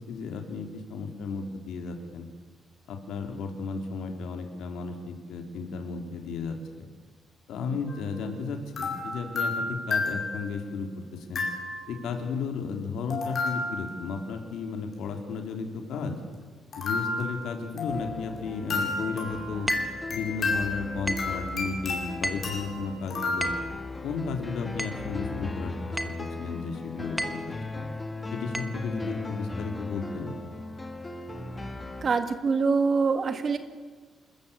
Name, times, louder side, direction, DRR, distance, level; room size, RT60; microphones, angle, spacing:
voice 1, 0.1-2.3 2.9-6.9 7.5-11.4 11.9-16.2 16.8-19.7 20.1-23.5 24.0-25.7 26.0-27.4 27.7-27.9 28.3-30.3, left 4 dB, 90° left, 4 dB, 3.1 m, -34 dB
sound 1, 7.9-8.1 8.8-10.7 11.4-12.0 13.1-14.1 16.7-18.3 18.7-23.6, left 3 dB, 40° left, 5.2 m, -32 dB
sound 2, 17.9-32.0, left 2 dB, 15° left, 1.7 m, -38 dB
sound 3, 19.7-20.0 21.1-21.4 22.2-22.6 23.4-23.7 24.8-25.1 26.0-26.3 27.2-27.5 28.5-28.8, right 1 dB, ahead, 1.3 m, -33 dB
voice 2, 32.0-33.6, right 4 dB, 35° right, 8 dB, 1.9 m, -24 dB
28.0 x 14.0 x 8.3 m, 1.5 s
cardioid pair, 155°, 0 cm